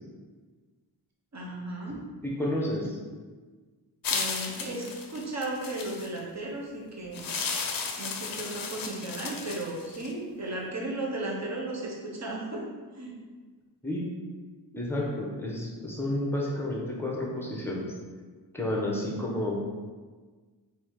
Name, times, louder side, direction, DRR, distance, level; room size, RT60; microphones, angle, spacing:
voice 1, 1.3-2.0 4.1-7.3 8.0-12.6 12.9-13.1, right 2 dB, 40° right, -2 dB, 0.9 m, -35 dB
voice 2, 2.2-3.0 13.8-14.1 14.7-17.9 18.5-19.7, left 1 dB, 5° left, -3 dB, 0.8 m, -31 dB
sound 1, 4.0-6.2 7.1-10.1, left 5 dB, 50° left, 0.5 m, -34 dB
4.7 x 2.8 x 3.6 m, 1.4 s
wide cardioid pair, 120°, 44 cm